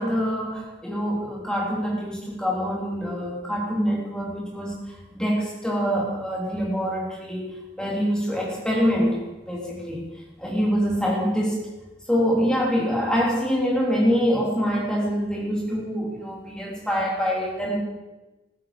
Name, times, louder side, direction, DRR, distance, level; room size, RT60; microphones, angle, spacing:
voice 1, 0.0-9.2 9.5-10.1 10.4-11.6 12.1-17.8, equal, 5° left, -3 dB, 3.3 m, -25 dB
15.0 x 13.5 x 5.0 m, 1.1 s
head